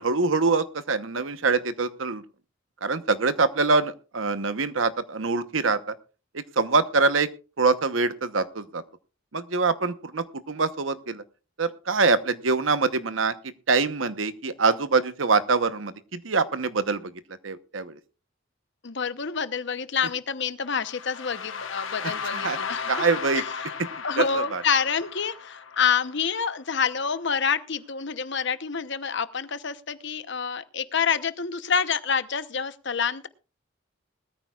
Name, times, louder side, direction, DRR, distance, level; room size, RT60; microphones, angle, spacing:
voice 1, 0.0-2.2 2.8-5.9 6.3-7.3 7.6-8.8 9.3-11.2 11.6-13.3 13.7-17.1 17.4-18.0 22.0-22.6 22.9-23.4 24.2-24.6, right 4 dB, 85° right, 12 dB, 1.1 m, -24 dB
voice 2, 18.8-23.1 23.3-23.4 24.0-33.3, left 6 dB, 65° left, 12 dB, 0.9 m, -27 dB
sound 1, 20.8-26.7, left 6 dB, 85° left, 1.3 m, -36 dB
20.5 x 14.0 x 2.4 m, 0.34 s
head